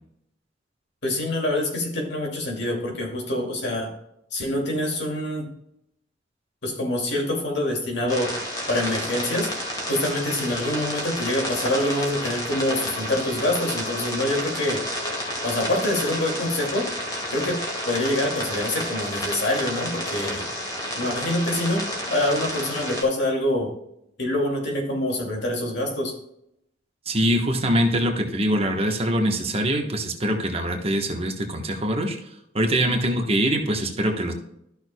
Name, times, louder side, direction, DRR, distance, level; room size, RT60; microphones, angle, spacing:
voice 1, 1.0-3.9 4.3-5.5 6.6-8.4 8.7-9.5 9.9-14.8 15.4-16.9 17.3-20.5 21.0-23.7 24.2-26.2, left 1 dB, 65° left, 0 dB, 2.4 m, -25 dB
sound 1, 8.1-23.0, left 1 dB, 20° left, 2.1 m, -30 dB
voice 2, 27.1-32.2 32.5-34.3, equal, 30° right, 3 dB, 1.2 m, -23 dB
13.0 x 6.4 x 2.3 m, 0.77 s
head